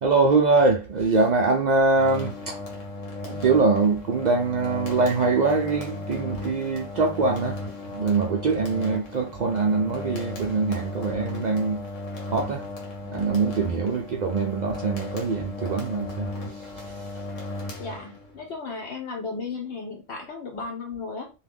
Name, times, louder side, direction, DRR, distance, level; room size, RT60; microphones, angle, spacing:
voice 1, 0.0-2.6 3.2-7.6 7.9-11.8 12.3-12.7 13.1-16.3 16.6-17.2, right 3 dB, 70° right, 0.4 m, -23 dB
sound 1, 1.9-18.4, left 2 dB, 90° left, 1.2 m, -36 dB
voice 2, 17.8-21.3, left 4 dB, 70° left, 0.9 m, -35 dB
2.8 x 2.3 x 3.4 m
omnidirectional pair, 1.3 m